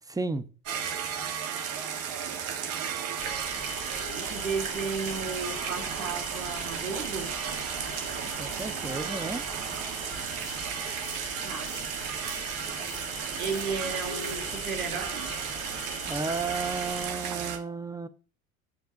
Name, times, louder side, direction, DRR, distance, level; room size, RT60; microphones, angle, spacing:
sound 1, 0.7-17.6, right 8 dB, 45° right, 1.5 m, -34 dB
sound 2, 3.2-17.1, left 4 dB, 15° left, 1.8 m, -42 dB
voice 1, 4.1-7.3 11.4-11.8 13.4-15.3, right 5 dB, 75° right, 2.2 m, -34 dB
voice 2, 8.4-9.4 16.1-18.1, right 3 dB, 10° right, 0.7 m, -33 dB
10.0 x 7.4 x 2.7 m
figure-of-eight pair, 65°, 42 cm